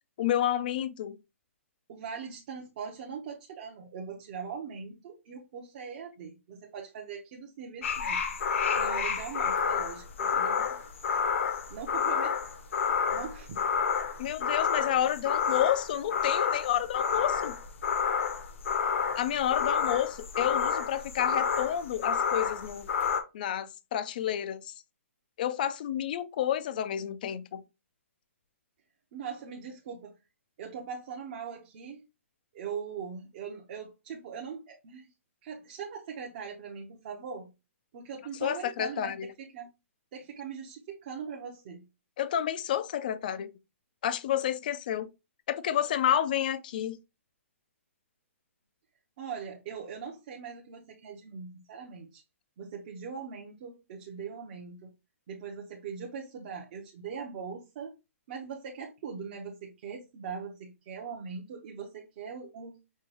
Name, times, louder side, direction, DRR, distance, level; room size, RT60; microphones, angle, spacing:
voice 1, 0.2-1.2 14.2-17.5 19.2-22.9 23.3-24.7 25.4-27.6 38.4-39.3 42.2-43.5 44.0-45.1 45.5-47.0, left 10 dB, 35° left, 0.4 m, -30 dB
voice 2, 1.9-8.2 8.7-10.8 11.1-11.2 11.7-12.4 13.1-13.6 29.1-30.1 30.6-32.1 32.5-35.1 35.4-37.5 37.9-39.7 40.1-41.8 49.2-52.2 52.6-54.9 55.3-58.0 58.3-62.8, right 6 dB, 35° right, 0.7 m, -41 dB
sound 1, 7.8-23.2, left 6 dB, 60° left, 0.8 m, -29 dB
5.3 x 2.2 x 3.0 m
hypercardioid pair, 165°, 8 cm